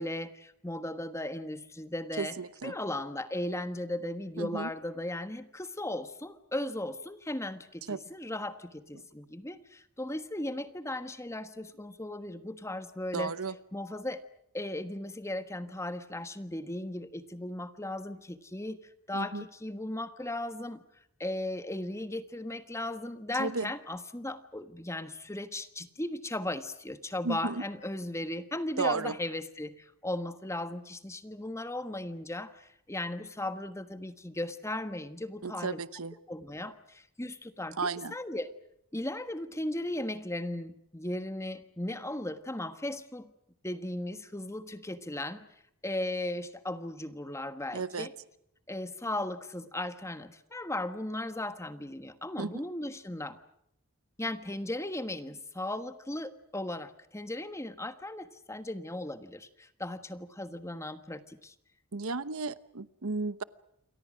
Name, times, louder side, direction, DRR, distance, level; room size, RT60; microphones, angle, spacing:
voice 1, 0.0-13.3 13.7-14.2 14.5-18.8 19.1-20.8 21.2-35.8 36.3-38.5 38.9-43.3 43.6-45.5 45.8-48.1 48.7-53.4 54.2-61.5, left 1 dB, 15° left, 11 dB, 1.4 m, -37 dB
voice 2, 2.2-2.7 4.4-4.7 7.9-8.0 13.1-13.5 19.1-19.4 23.4-23.7 27.2-27.6 28.8-29.1 35.4-36.1 37.8-38.1 47.7-48.1 52.4-52.5 61.9-63.4, right 4 dB, 70° right, 16 dB, 0.9 m, -33 dB
28.5 x 23.5 x 6.3 m, 0.76 s
head